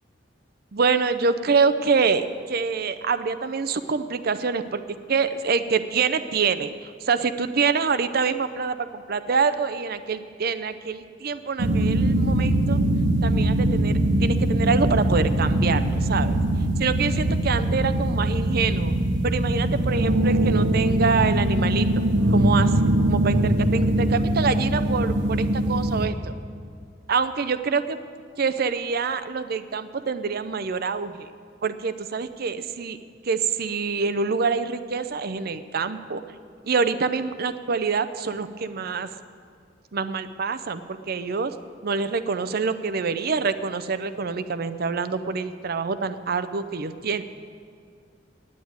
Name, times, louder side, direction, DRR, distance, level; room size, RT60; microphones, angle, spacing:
voice 1, 0.7-4.8 5.1-12.8 13.2-16.4 16.8-18.9 19.2-21.9 22.3-22.7 23.1-26.4 27.1-28.0 28.4-31.3 31.6-33.0 33.2-36.2 36.6-39.1 39.9-41.5 41.8-47.2, right 5 dB, 55° right, 11 dB, 0.6 m, -26 dB
sound 1, 11.6-26.1, right 1 dB, 90° right, 1.0 m, -22 dB
9.4 x 8.6 x 9.4 m, 2.2 s
head